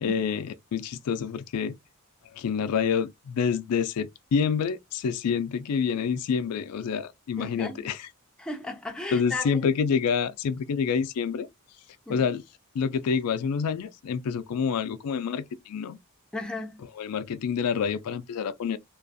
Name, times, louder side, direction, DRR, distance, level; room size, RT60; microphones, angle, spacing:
voice 1, 0.0-1.8 2.3-8.1 9.1-11.5 12.1-12.4 12.7-16.0 17.0-18.8, left 6 dB, 80° left, 0.4 m, -27 dB
voice 2, 7.4-7.8 8.4-9.6 12.1-12.3 16.3-16.8, left 2 dB, 5° left, 0.4 m, -35 dB
2.4 x 2.3 x 2.5 m
head